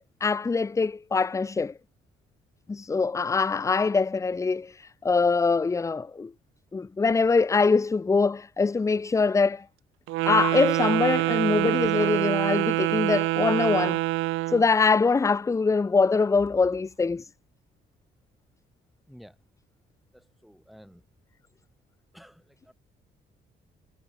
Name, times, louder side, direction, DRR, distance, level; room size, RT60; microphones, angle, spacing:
voice 1, 0.0-1.7 2.7-6.3 6.7-9.6 10.2-14.0 14.5-17.3, left 4 dB, 15° left, 0.4 m, -23 dB
Wind instrument woodwind instrument, 10.1-14.7, right 19 dB, 90° right, 0.4 m, -25 dB
voice 2, 19.1-19.4 20.1-21.0 22.1-22.7, equal, ahead, 3.0 m, -52 dB
cardioid pair, 90°, 20 cm